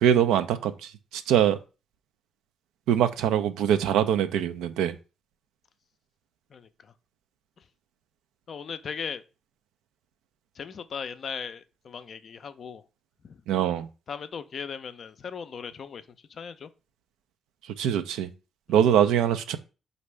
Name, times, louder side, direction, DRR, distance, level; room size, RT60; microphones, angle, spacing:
voice 1, 0.0-1.6 2.9-5.0 13.5-13.9 17.8-18.3 18.7-19.6, right 9 dB, 75° right, 0.4 m, -23 dB
voice 2, 6.5-6.9 7.6-7.7 8.5-9.2 10.5-12.8 13.2-13.4 14.1-16.7, left 6 dB, 55° left, 0.4 m, -38 dB
5.0 x 2.6 x 3.2 m
hypercardioid pair, 45°, 0 cm